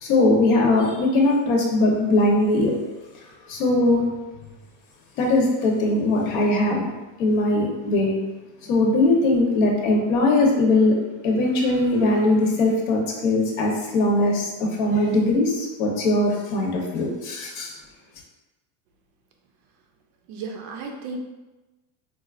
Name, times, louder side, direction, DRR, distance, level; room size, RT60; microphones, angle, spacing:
voice 1, 0.0-2.8 3.5-4.0 5.2-6.9 7.2-8.1 8.7-10.9 11.2-17.7, left 2 dB, 70° left, 0 dB, 0.9 m, -20 dB
voice 2, 20.3-21.2, right 4 dB, 40° right, 3 dB, 0.4 m, -34 dB
4.2 x 2.4 x 2.4 m, 1.1 s
supercardioid pair, 160°, 42 cm